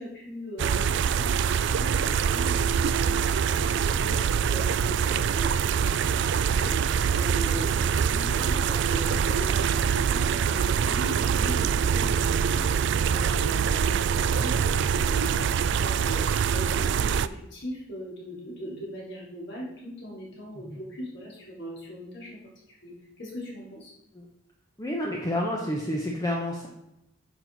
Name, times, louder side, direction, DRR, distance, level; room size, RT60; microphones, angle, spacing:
voice 1, 0.0-15.5 15.8-22.4 22.7-23.9, equal, 55° left, -5 dB, 3.5 m, -40 dB
sound 1, 0.6-17.3, right 7 dB, 60° right, 0.3 m, -24 dB
voice 2, 24.8-26.7, left 1 dB, 15° left, -1 dB, 0.8 m, -29 dB
9.5 x 6.1 x 4.0 m, 0.87 s
head